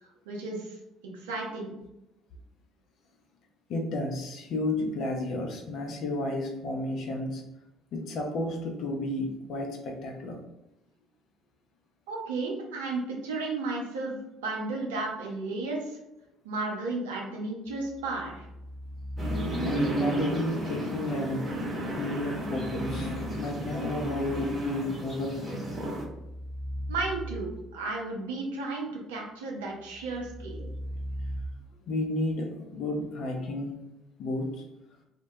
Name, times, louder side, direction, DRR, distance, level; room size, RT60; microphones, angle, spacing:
voice 1, 0.3-0.8 1.0-1.8 12.1-16.0 16.4-18.5 26.9-30.7, right 3 dB, 75° right, -1 dB, 0.5 m, -33 dB
voice 2, 3.7-7.4 7.9-10.4 19.6-21.5 22.0-25.8 31.9-33.8 34.2-34.7, left 2 dB, 55° left, 2 dB, 0.5 m, -32 dB
sound 1, 17.7-20.1 22.1-24.7 25.4-27.9 29.9-31.4, equal, 15° left, 0.7 m, -39 dB
sound 2, 19.2-26.0, right 1 dB, 30° right, 0.8 m, -32 dB
2.1 x 2.1 x 2.7 m, 0.89 s
figure-of-eight pair, 50°, 0 cm